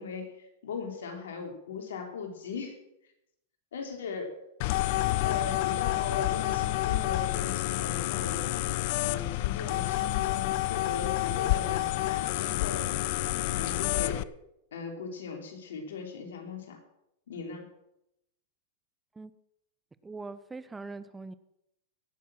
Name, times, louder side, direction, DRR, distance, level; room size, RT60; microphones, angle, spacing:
voice 1, 0.0-2.8 3.7-4.3 5.2-8.4 9.0-12.9 13.4-14.3 14.7-16.8 17.3-17.7, left 5 dB, 80° left, 4 dB, 3.2 m, -38 dB
sound 1, 4.6-14.2, left 17 dB, 55° left, 0.5 m, -29 dB
voice 2, 20.0-21.3, right 3 dB, 10° right, 15 dB, 0.7 m, -41 dB
17.5 x 7.2 x 6.1 m, 0.82 s
hypercardioid pair, 120°, 0 cm